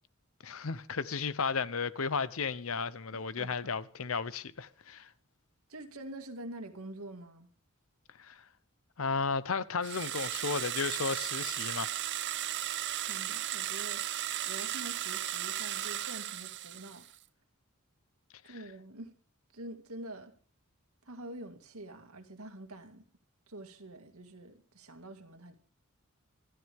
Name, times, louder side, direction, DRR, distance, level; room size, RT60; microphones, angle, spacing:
voice 1, 0.4-5.1 8.2-8.4 9.0-12.0 18.5-18.6, left 5 dB, 70° left, 0.8 m, -34 dB
voice 2, 3.1-3.7 5.7-7.5 13.0-14.0 14.5-17.1 18.4-19.1 19.5-20.3 21.1-23.0 23.5-25.6, right 1 dB, 85° right, 2.2 m, -46 dB
sound 1, 9.8-17.1, right 12 dB, 55° right, 0.7 m, -35 dB
26.0 x 12.5 x 3.6 m
head